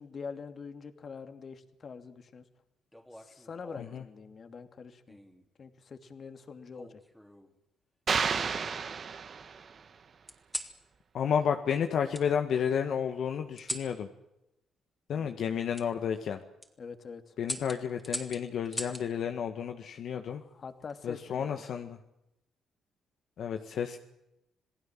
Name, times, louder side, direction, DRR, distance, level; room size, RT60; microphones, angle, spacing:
voice 1, 0.0-2.4 3.2-5.2 5.6-7.0 16.8-17.3 20.3-21.6, left 5 dB, 45° left, 8 dB, 2.7 m, -44 dB
sound 1, 2.9-4.0 5.1-5.5 6.7-7.5 8.1-9.0 10.3-10.8 12.1-12.3 13.6-13.9 15.7-15.9 16.4-16.7 17.4-19.1 20.6-21.0, equal, 5° left, 3.3 m, -41 dB
sound 2, 8.1-9.8, right 6 dB, 50° right, 1.9 m, -31 dB
voice 2, 11.1-14.1 15.1-16.4 17.4-20.4 21.0-22.0 23.4-24.0, left 7 dB, 65° left, 6 dB, 1.7 m, -31 dB
28.0 x 18.5 x 7.5 m, 0.88 s
cardioid pair, 90°, 0 cm